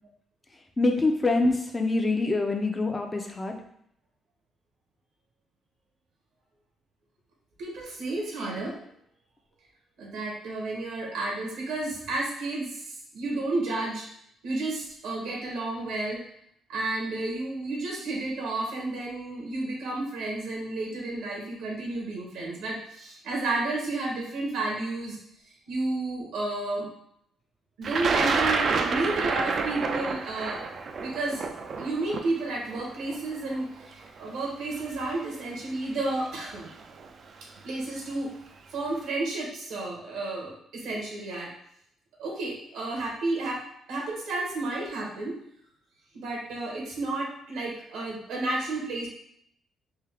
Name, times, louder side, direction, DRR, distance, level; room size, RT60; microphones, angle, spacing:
voice 1, 0.8-3.6, left 2 dB, 25° left, 4 dB, 0.6 m, -25 dB
voice 2, 7.6-8.8 10.0-14.1 14.4-16.2 16.7-25.2 25.7-26.9 27.8-30.6 31.0-31.4 31.8-36.7 37.6-38.3 38.7-41.5 42.2-45.4 46.1-49.1, right 2 dB, 85° right, -1 dB, 1.2 m, -31 dB
Thunder, 27.8-33.9 34.8-34.9 36.0-36.3 36.6-37.1, right 4 dB, 55° right, 0.4 m, -28 dB
3.5 x 2.7 x 3.5 m, 0.71 s
cardioid pair, 90°, 0 cm